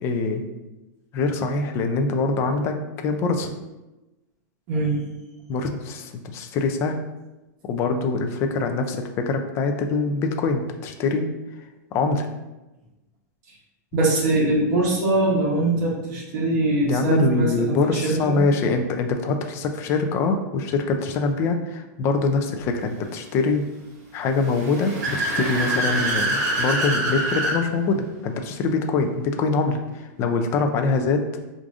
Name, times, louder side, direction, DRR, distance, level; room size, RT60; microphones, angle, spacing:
voice 1, 0.0-0.5 1.1-2.8 3.0-3.5 5.5-7.0 7.6-11.3 11.9-12.3 16.8-23.6 24.1-31.4, left 3 dB, 25° left, 5 dB, 0.3 m, -24 dB
voice 2, 4.7-5.0 13.9-18.4, right 2 dB, 40° right, -6 dB, 1.3 m, -22 dB
Car / Accelerating revving vroom, 24.4-27.6, right 1 dB, 60° right, 1.3 m, -25 dB
4.7 x 2.5 x 2.4 m, 1.0 s
supercardioid pair, 155°, 10 cm